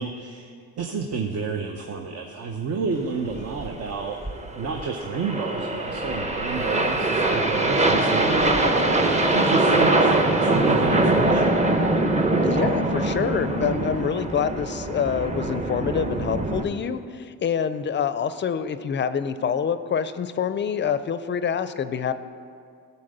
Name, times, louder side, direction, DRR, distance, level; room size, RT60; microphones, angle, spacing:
voice 1, 0.0-4.3 4.5-11.5, right 5 dB, 55° right, 2 dB, 0.8 m, -30 dB
sound 1, 3.3-16.6, right 2 dB, 25° right, 0.8 m, -23 dB
voice 2, 12.4-22.1, left 7 dB, 40° left, 13 dB, 0.4 m, -26 dB
12.5 x 4.2 x 6.6 m, 2.3 s
cardioid pair, 90°, 30 cm